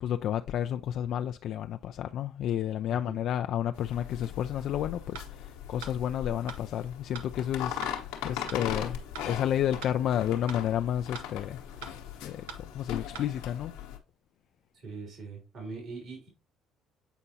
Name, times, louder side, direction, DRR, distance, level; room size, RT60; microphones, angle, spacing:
voice 1, 0.0-9.0 9.3-11.6 12.2-13.7, left 10 dB, 65° left, 0.3 m, -31 dB
sound 1, 3.7-14.0, left 9 dB, 80° left, 1.0 m, -39 dB
sound 2, 5.2-5.3 5.8-6.0 6.5-6.6 7.1-7.3 7.8-8.0 8.5-8.6 9.2-9.3 9.8-10.0 10.5-10.6 11.1-11.3 11.8-12.0 12.5-12.6 13.2-13.3, right 6 dB, 85° right, 0.8 m, -42 dB
voice 2, 14.8-16.3, right 4 dB, 60° right, 3.1 m, -41 dB
8.1 x 4.4 x 2.8 m
hypercardioid pair, 60°, 0 cm